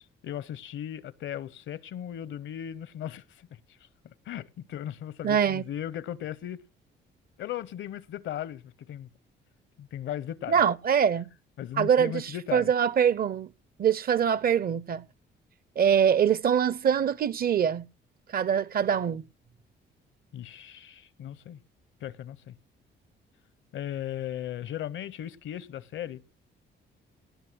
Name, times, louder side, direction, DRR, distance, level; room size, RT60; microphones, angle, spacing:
voice 1, 0.0-3.6 4.0-6.6 7.4-9.1 9.8-10.6 11.6-12.7 20.3-21.6 22.0-22.6 23.7-26.4, left 11 dB, 75° left, 0.8 m, -37 dB
voice 2, 5.2-5.6 10.5-11.3 11.8-12.1 12.5-13.5 13.8-15.0 15.8-17.8 18.3-19.2, right 8 dB, 50° right, 0.6 m, -23 dB
18.5 x 6.2 x 6.2 m
cardioid pair, 90°, 20 cm